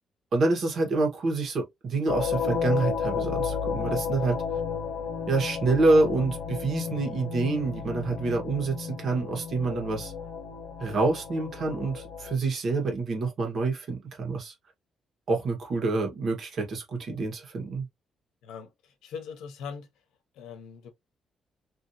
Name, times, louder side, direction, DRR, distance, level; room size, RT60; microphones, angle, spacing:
voice 1, 0.3-4.4 5.3-10.1 10.8-14.5 15.3-17.8, right 3 dB, 60° right, 1.6 m, -27 dB
sound 1, 2.1-12.3, left 6 dB, 60° left, 1.2 m, -32 dB
voice 2, 18.4-19.9 20.3-20.9, left 6 dB, 90° left, 0.9 m, -41 dB
3.0 x 2.8 x 2.9 m
cardioid pair, 90°, 0 cm